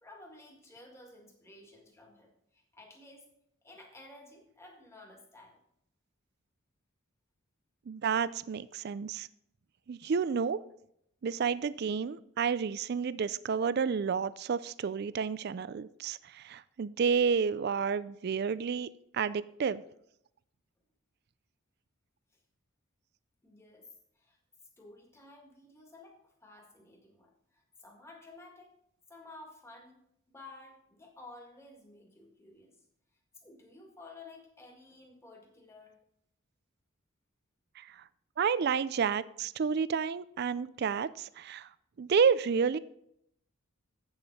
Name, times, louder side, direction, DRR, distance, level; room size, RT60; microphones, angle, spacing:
voice 1, 0.0-3.3 3.6-5.6 23.4-24.4 24.8-28.8 29.1-30.0 30.3-32.8 33.4-36.0, left 2 dB, 15° left, 1 dB, 1.8 m, -53 dB
voice 2, 7.9-9.3 9.9-10.6 11.2-18.9 19.1-19.8 37.8-38.0 38.4-41.7 42.0-42.8, right 6 dB, 50° right, 17 dB, 0.4 m, -30 dB
8.2 x 7.0 x 5.3 m, 0.74 s
head